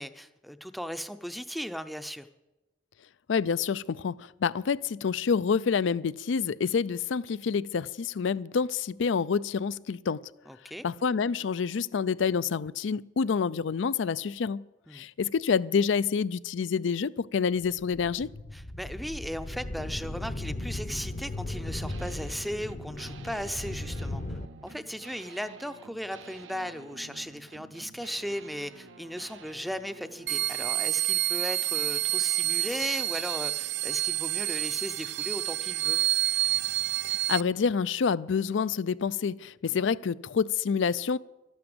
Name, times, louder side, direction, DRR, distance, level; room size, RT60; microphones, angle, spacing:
voice 1, 0.0-2.3 10.5-10.8 14.9-15.1 18.5-36.0 39.7-39.8, equal, ahead, 0.5 m, -37 dB
voice 2, 3.3-10.2 10.8-14.6 14.9-18.3 37.0-41.2, left 6 dB, 75° left, 0.4 m, -28 dB
sound 1, 17.6-24.5, left 1 dB, 40° left, 0.7 m, -37 dB
sound 2, 21.9-30.5, right 4 dB, 80° right, 0.8 m, -50 dB
sound 3, 30.3-37.4, right 16 dB, 60° right, 0.4 m, -28 dB
12.5 x 12.0 x 7.8 m
head